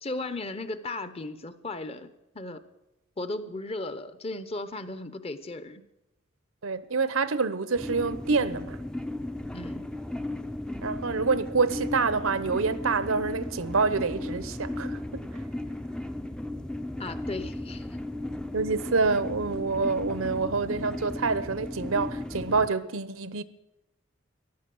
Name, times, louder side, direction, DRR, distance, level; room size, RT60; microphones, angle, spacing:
voice 1, 0.0-2.1 2.3-2.6 3.2-5.9 9.5-9.9 17.0-17.9, left 2 dB, 30° left, 0.8 m, -36 dB
voice 2, 6.6-8.8 10.8-15.4 18.5-23.4, right 4 dB, 80° right, 0.9 m, -27 dB
sound 1, 7.8-22.7, left 1 dB, 5° left, 0.5 m, -35 dB
14.0 x 11.5 x 7.7 m
head